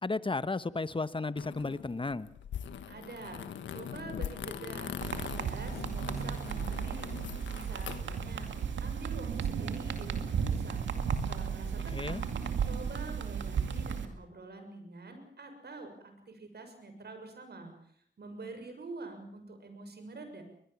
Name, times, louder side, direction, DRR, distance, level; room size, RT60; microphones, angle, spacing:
voice 1, 0.0-2.3 11.9-12.2, left 3 dB, 25° left, 15 dB, 1.2 m, -33 dB
sound 1, 1.4-8.5, left 8 dB, 85° left, 1.4 m, -42 dB
voice 2, 2.9-8.5 8.8-10.8 11.1-12.3 12.6-17.7 18.2-20.4, right 3 dB, 60° right, 6 dB, 6.5 m, -46 dB
sound 2, 5.0-14.0, right 6 dB, 80° right, 2.3 m, -34 dB
22.5 x 21.5 x 7.3 m, 0.67 s
cardioid pair, 50°, 19 cm